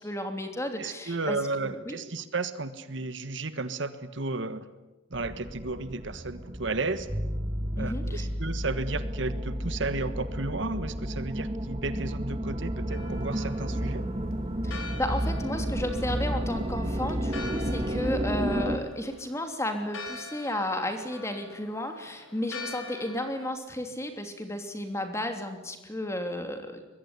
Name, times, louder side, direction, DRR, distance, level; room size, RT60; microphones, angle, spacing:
voice 1, 0.0-1.4 1.6-2.0 7.8-8.3 14.6-26.8, left 1 dB, 15° left, 6 dB, 3.2 m, -33 dB
voice 2, 0.8-4.6 5.1-7.1 7.8-14.1, right 3 dB, 65° right, 12 dB, 1.4 m, -33 dB
sound 1, 5.1-18.8, right 1 dB, 30° right, 1.5 m, -32 dB
sound 2, 7.1-17.0, equal, 15° right, 7.3 m, -37 dB
Church bell, 12.9-23.5, left 3 dB, 85° left, 3.4 m, -44 dB
24.5 x 21.5 x 9.7 m, 1.1 s
head